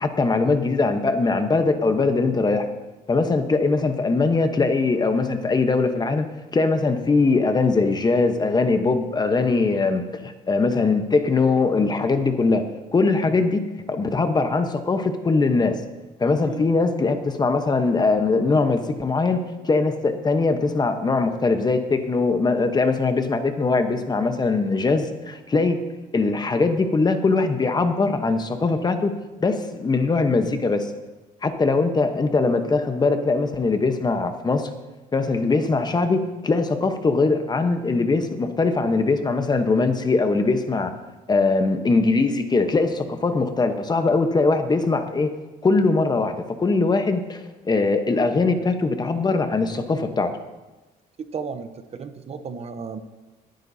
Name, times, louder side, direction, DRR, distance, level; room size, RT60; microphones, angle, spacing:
voice 1, 0.0-2.7 3.1-6.3 6.5-12.6 12.9-13.6 13.9-15.8 16.2-25.8 26.1-30.9 31.4-34.7 35.1-40.9 41.3-45.3 45.6-50.3, left 3 dB, 25° left, 7 dB, 1.0 m, -21 dB
voice 2, 51.2-53.0, right 5 dB, 40° right, 9 dB, 0.8 m, -34 dB
21.0 x 9.2 x 2.8 m, 1.1 s
cardioid pair, 110°, 17 cm